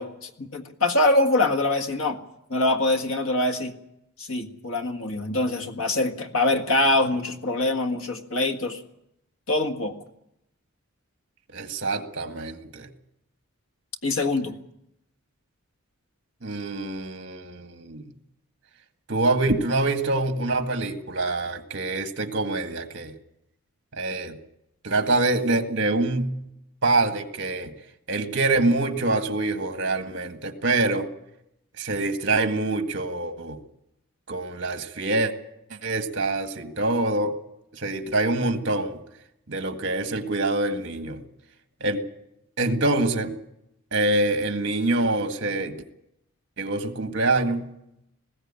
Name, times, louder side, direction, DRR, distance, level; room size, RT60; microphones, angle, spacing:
voice 1, 0.0-2.2 2.5-3.7 4.2-8.8 9.5-9.9 14.0-14.5, left 2 dB, 65° left, 6 dB, 1.8 m, -24 dB
voice 2, 11.5-12.9 16.4-18.1 19.1-23.1 23.9-24.4 24.8-26.4 26.8-27.7 28.1-31.1 31.8-33.6 34.3-35.3 35.7-37.4 37.7-39.0 39.5-41.2 41.8-42.0 42.6-43.3 43.9-45.8 46.6-47.7, right 2 dB, 55° right, 7 dB, 1.8 m, -25 dB
20.0 x 16.0 x 8.9 m, 0.83 s
head